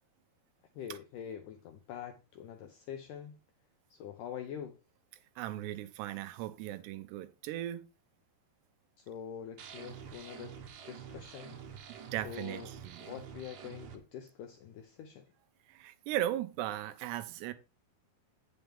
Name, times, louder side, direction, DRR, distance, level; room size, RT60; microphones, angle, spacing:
voice 1, 0.8-3.4 3.9-4.8 9.0-10.6 10.8-11.6 12.2-12.7 13.0-15.3, left 8 dB, 80° left, 1.8 m, -45 dB
voice 2, 5.4-7.9 12.1-13.1 15.7-17.5, right 13 dB, 90° right, 2.9 m, -37 dB
sound 1, 9.6-14.0, right 7 dB, 65° right, 1.9 m, -48 dB
9.2 x 6.9 x 3.5 m
omnidirectional pair, 4.7 m